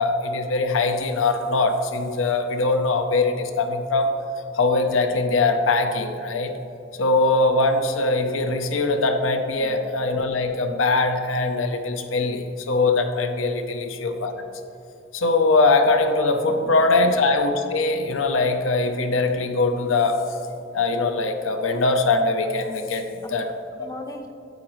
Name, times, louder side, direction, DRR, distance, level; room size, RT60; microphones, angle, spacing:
voice 1, 0.0-4.1 4.5-6.5 7.0-14.3 15.1-20.2 20.7-23.5, left 3 dB, 85° left, 6 dB, 0.7 m, -22 dB
voice 2, 9.5-9.9 23.2-24.3, left 1 dB, 20° left, 4 dB, 0.6 m, -40 dB
9.0 x 8.7 x 3.1 m, 2.8 s
head